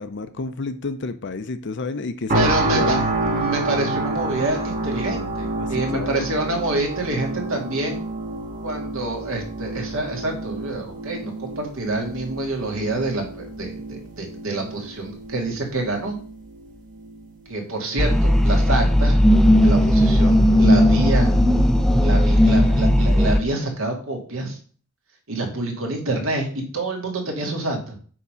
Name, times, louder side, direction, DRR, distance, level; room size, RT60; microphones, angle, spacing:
voice 1, 0.0-3.1 5.6-6.3, left 3 dB, 55° left, 11 dB, 0.7 m, -30 dB
sound 1, 2.3-17.3 17.8-18.0, right 2 dB, 35° right, 1.6 m, -29 dB
voice 2, 2.3-8.0 8.6-16.2 17.5-19.2 19.6-21.3 22.0-24.6 25.3-28.0, right 2 dB, 65° right, 1 dB, 2.2 m, -27 dB
sound 2, 18.0-23.4, equal, ahead, 0.5 m, -16 dB
8.3 x 3.8 x 5.6 m, 0.43 s
head